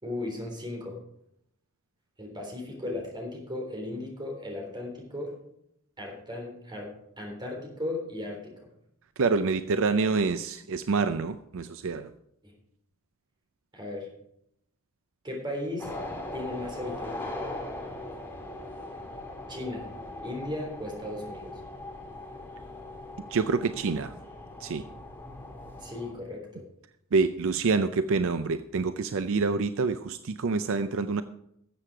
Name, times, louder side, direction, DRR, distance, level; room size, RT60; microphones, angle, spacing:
voice 1, 0.0-1.0 2.2-5.4 6.0-8.5 12.4-12.5 13.7-14.1 15.2-15.9 16.3-17.2 19.5-19.9 20.2-21.6 25.8-26.7, left 1 dB, 20° right, 0 dB, 3.6 m, -36 dB
voice 2, 9.2-12.1 23.3-24.1 24.6-24.8 27.1-31.2, right 4 dB, 65° right, 11 dB, 0.5 m, -27 dB
sound 1, 15.8-26.1, left 1 dB, 10° left, 2.2 m, -40 dB
13.0 x 7.7 x 4.9 m, 0.75 s
head